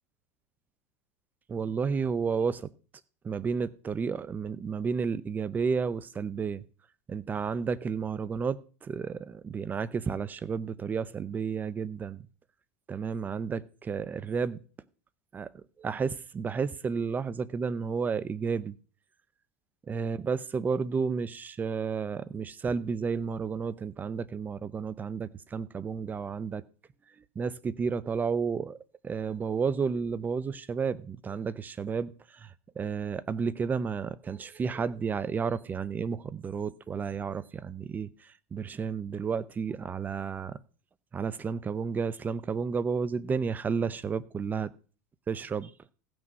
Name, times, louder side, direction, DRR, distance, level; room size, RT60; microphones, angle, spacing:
voice 1, 1.5-2.7 3.2-6.6 7.1-12.2 12.9-14.6 15.3-18.8 19.9-26.6 27.4-28.8 29.0-40.6 41.1-44.7 45.3-45.7, right 5 dB, 20° right, 0.7 m, -32 dB
15.5 x 6.1 x 5.4 m
supercardioid pair, 115°, 8 cm